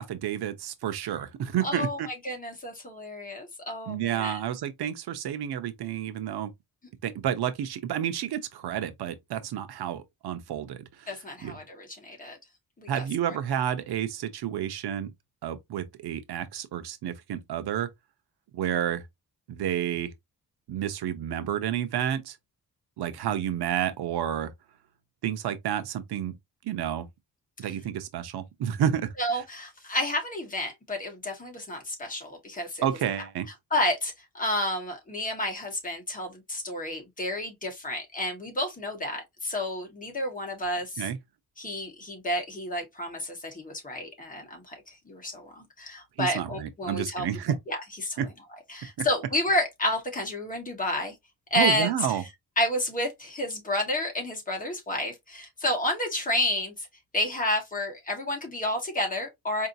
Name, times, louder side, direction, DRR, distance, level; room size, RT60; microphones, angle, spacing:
voice 1, 0.0-2.1 3.9-6.5 7.0-11.2 11.4-11.6 12.9-15.1 15.4-17.9 18.5-19.0 19.5-20.1 20.7-22.4 23.0-24.5 25.2-26.3 26.6-27.1 27.6-29.1 32.8-33.5 41.0-41.2 46.2-47.6 48.2-48.3 51.5-52.2, right 10 dB, 85° right, 0.8 m, -30 dB
voice 2, 1.6-4.4 11.1-12.4 12.8-13.0 29.2-32.9 33.7-41.0 41.6-47.2 47.7-47.8 48.0-48.2 48.7-51.1 51.5-51.9 52.6-56.9 57.1-59.7, left 1 dB, 20° left, 1.4 m, -30 dB
4.6 x 2.8 x 2.6 m
wide cardioid pair, 155°, 38 cm